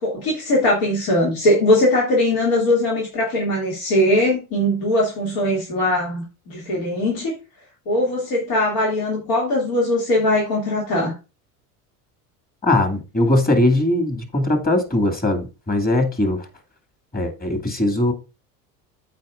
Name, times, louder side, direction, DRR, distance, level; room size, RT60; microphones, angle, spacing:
voice 1, 0.0-7.3 7.9-11.1, left 1 dB, 65° left, 2.8 m, -20 dB
voice 2, 12.6-16.5 17.1-18.1, left 1 dB, 20° left, 2.3 m, -20 dB
14.0 x 4.8 x 2.5 m
hypercardioid pair, 75°, 46 cm